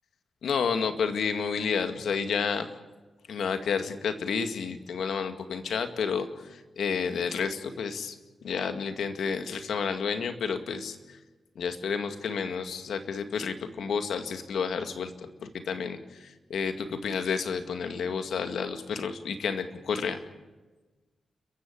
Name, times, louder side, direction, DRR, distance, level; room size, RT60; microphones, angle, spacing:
voice 1, 0.4-2.7 3.3-6.3 6.8-8.2 8.4-11.0 11.6-15.1 15.4-16.0 16.5-20.2, left 6 dB, 90° left, 8 dB, 2.0 m, -30 dB
30.0 x 15.0 x 8.6 m, 1.3 s
wide cardioid pair, 135°, 0 cm